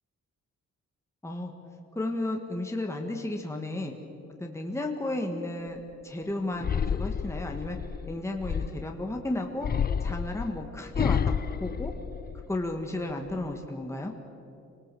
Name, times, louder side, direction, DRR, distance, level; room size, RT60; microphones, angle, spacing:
voice 1, 1.9-4.0 4.4-7.8 8.1-9.7 10.0-11.2 11.6-11.9 12.5-14.1, left 2 dB, 10° left, 2 dB, 1.6 m, -33 dB
sound 1, 6.6-9.0 9.6-12.7 13.1-13.7, left 7 dB, 35° left, 0.4 m, -30 dB
27.0 x 19.0 x 7.7 m, 2.8 s
wide cardioid pair, 145°, 29 cm